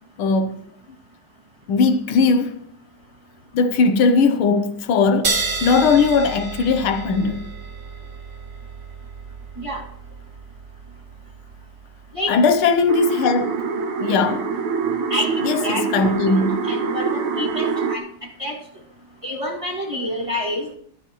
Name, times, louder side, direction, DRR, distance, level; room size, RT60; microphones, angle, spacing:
voice 1, 0.2-0.6 1.7-2.6 3.5-7.5 12.3-13.6 14.0-14.5 15.4-16.7, left 4 dB, 85° left, 1.7 m, -19 dB
sound 1, 5.2-12.2, right 4 dB, 35° right, 0.9 m, -31 dB
sound 2, 12.9-18.0, right 5 dB, 85° right, 1.8 m, -25 dB
voice 2, 15.6-18.1 18.4-18.6 19.2-20.7, left 1 dB, 15° right, 2.1 m, -28 dB
15.0 x 11.5 x 3.1 m
omnidirectional pair, 2.3 m